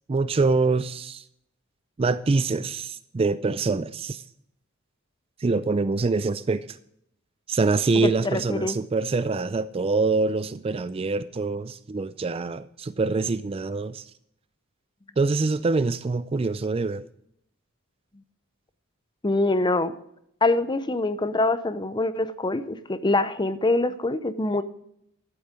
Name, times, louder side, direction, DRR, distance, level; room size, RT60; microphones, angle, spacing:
voice 1, 0.1-1.2 2.0-4.2 5.4-6.7 7.5-14.0 15.2-17.0, right 3 dB, 25° right, 0.3 m, -25 dB
voice 2, 8.0-8.7 19.2-19.9 20.4-24.6, left 2 dB, 20° left, 0.6 m, -24 dB
11.5 x 8.3 x 5.0 m
head